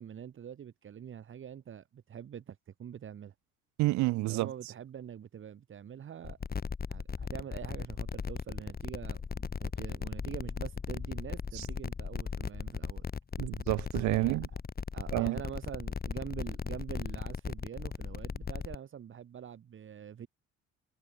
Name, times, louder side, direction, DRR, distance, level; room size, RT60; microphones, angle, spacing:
voice 1, 0.0-3.3 4.3-6.4 6.9-13.0 14.1-14.4 14.9-20.3, right 9 dB, 45° right, 2.0 m, -45 dB
voice 2, 3.8-4.5 11.5-11.6 13.4-14.5 15.1-15.4, right 19 dB, 70° right, 1.4 m, -29 dB
sound 1, 6.2-18.8, left 5 dB, 30° left, 4.6 m, -37 dB
supercardioid pair, 85°, 30 cm